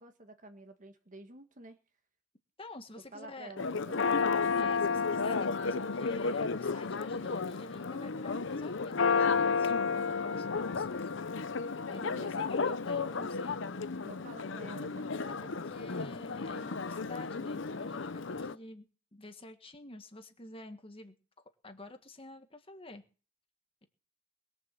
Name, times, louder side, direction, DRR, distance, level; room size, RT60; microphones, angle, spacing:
voice 1, 0.0-1.8 3.1-4.0 12.0-12.3 14.0-15.1, right 1 dB, 40° right, 7 dB, 1.6 m, -50 dB
voice 2, 2.6-3.5 4.6-11.1 11.9-13.6 15.4-18.9 19.1-23.0, left 2 dB, 25° left, 7 dB, 1.6 m, -49 dB
Church bell, 3.6-18.5, left 5 dB, 65° left, 0.7 m, -32 dB
21.0 x 7.2 x 7.6 m, 0.38 s
head